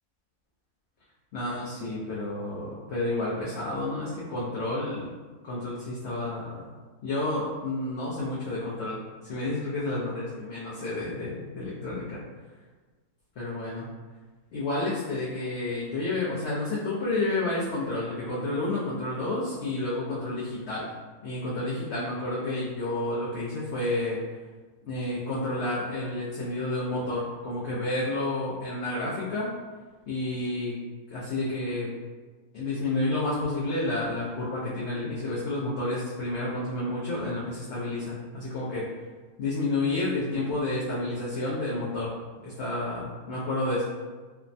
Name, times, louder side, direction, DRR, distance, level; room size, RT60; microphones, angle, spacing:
voice 1, 1.3-5.1 5.4-6.6 7.0-9.0 9.3-12.2 13.4-13.9 14.5-20.9 21.2-24.2 24.9-29.5 30.1-30.7 31.1-31.9 32.5-38.8 39.4-42.1 42.4-43.8, left 2 dB, 65° left, -7 dB, 0.6 m, -30 dB
3.2 x 2.0 x 2.5 m, 1.3 s
omnidirectional pair, 1.7 m